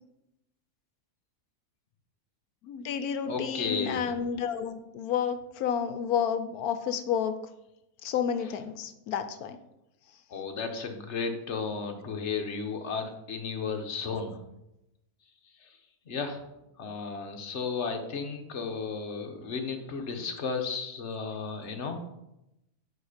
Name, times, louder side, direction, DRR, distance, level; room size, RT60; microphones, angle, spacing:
voice 1, 2.6-7.4 8.0-9.6, left 8 dB, 75° left, 10 dB, 1.1 m, -30 dB
voice 2, 3.3-4.0 10.3-14.4 15.6-15.7 16.1-16.4 16.8-22.0, left 5 dB, 50° left, 5 dB, 1.2 m, -34 dB
9.0 x 4.6 x 5.0 m, 0.88 s
omnidirectional pair, 1.6 m